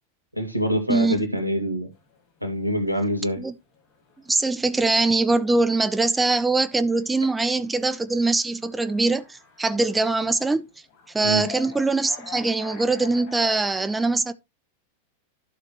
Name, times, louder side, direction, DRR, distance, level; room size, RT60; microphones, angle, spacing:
voice 1, 0.3-1.9 2.4-3.4 11.2-11.4, equal, 90° right, 2.2 m, -25 dB
voice 2, 0.9-1.2 3.4-3.5 4.3-10.7 11.1-14.3, right 3 dB, 10° right, 0.6 m, -22 dB
sound 1, 1.9-13.7, left 8 dB, 45° left, 4.6 m, -47 dB
12.0 x 6.6 x 3.0 m
figure-of-eight pair, 90°, 0 cm